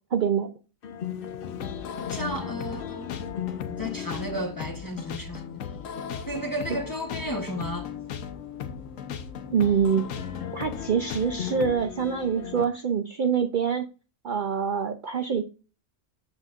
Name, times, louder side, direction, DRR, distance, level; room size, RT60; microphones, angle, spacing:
voice 1, 0.1-0.5 9.5-10.1 10.5-13.9 14.2-15.4, right 7 dB, 55° right, 0.6 m, -25 dB
sound 1, 0.8-12.6, left 9 dB, 55° left, 0.7 m, -39 dB
sound 2, 1.4-11.8, left 7 dB, 80° left, 1.1 m, -37 dB
voice 2, 2.1-3.2 3.7-5.4 6.3-7.9, equal, 20° left, 0.8 m, -33 dB
7.9 x 7.6 x 2.5 m
omnidirectional pair, 1.4 m